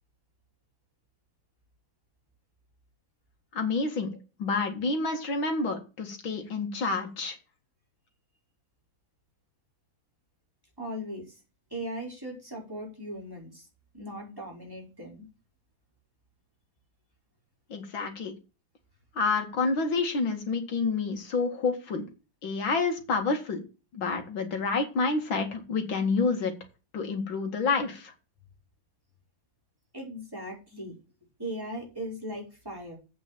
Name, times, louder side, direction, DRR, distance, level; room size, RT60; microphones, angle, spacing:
voice 1, 3.5-4.1 4.4-7.4 17.7-18.3 19.2-22.0 22.4-23.6 23.9-26.5 26.9-28.1, left 4 dB, 70° left, 4 dB, 2.8 m, -28 dB
voice 2, 10.8-11.4 11.7-13.7 13.9-15.3 29.9-30.9 31.4-33.0, equal, 10° right, -3 dB, 4.8 m, -38 dB
8.5 x 6.1 x 7.4 m, 0.31 s
omnidirectional pair, 2.2 m